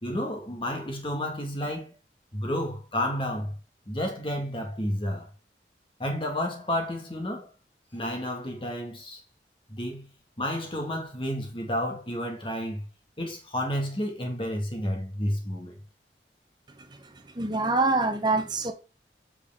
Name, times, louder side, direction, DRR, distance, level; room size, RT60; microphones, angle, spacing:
voice 1, 0.0-1.9 2.3-3.5 3.9-5.3 6.0-7.5 7.9-9.2 9.7-10.1 10.4-12.9 13.2-15.8, equal, 30° left, 1.7 m, -31 dB
voice 2, 17.3-18.7, right 3 dB, 25° right, 0.9 m, -25 dB
7.8 x 4.8 x 3.5 m
head